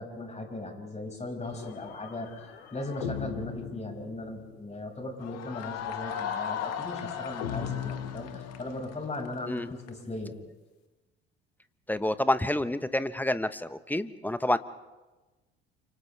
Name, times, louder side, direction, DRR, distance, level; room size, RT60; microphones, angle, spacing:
voice 1, 0.0-2.3 2.7-10.4, left 2 dB, 20° left, 3 dB, 5.7 m, -38 dB
sound 1, 1.4-4.7 5.8-9.0, left 8 dB, 80° left, 2.5 m, -40 dB
sound 2, 5.2-9.9, left 8 dB, 55° left, 1.8 m, -37 dB
voice 2, 11.9-14.6, left 1 dB, 5° left, 13 dB, 1.1 m, -28 dB
29.5 x 26.5 x 3.4 m, 1.1 s
hypercardioid pair, 60°, 31 cm